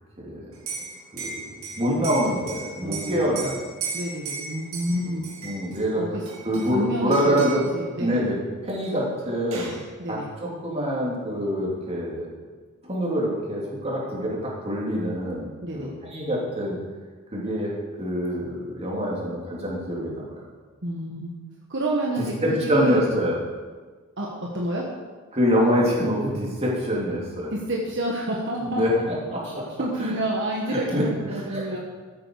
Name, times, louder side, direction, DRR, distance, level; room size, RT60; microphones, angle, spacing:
voice 1, 0.2-0.5 0.8-1.3 1.6-3.6 5.4-6.0 6.4-7.6 8.0-8.4 8.6-9.7 10.1-12.3 12.8-16.8 17.3-17.7 18.0-20.4 22.4-23.4 25.3-27.5 28.6-29.6 30.0-30.1 30.7-31.0 31.3-31.8, equal, 30° right, -4 dB, 3.2 m, -25 dB
Liquid, 0.5-5.8 6.3-6.8 7.1-7.7 8.9-9.0 9.2-9.8, right 5 dB, 75° right, 2.2 m, -36 dB
voice 2, 2.8-3.5 3.9-5.2 6.0-6.2 6.7-8.3 10.0-10.3 15.6-15.9 20.8-21.3 21.7-23.0 24.2-24.9 27.5-29.0 29.4-29.5 29.8-31.8, right 1 dB, 55° right, -2 dB, 1.4 m, -29 dB
13.0 x 8.9 x 4.8 m, 1.4 s
head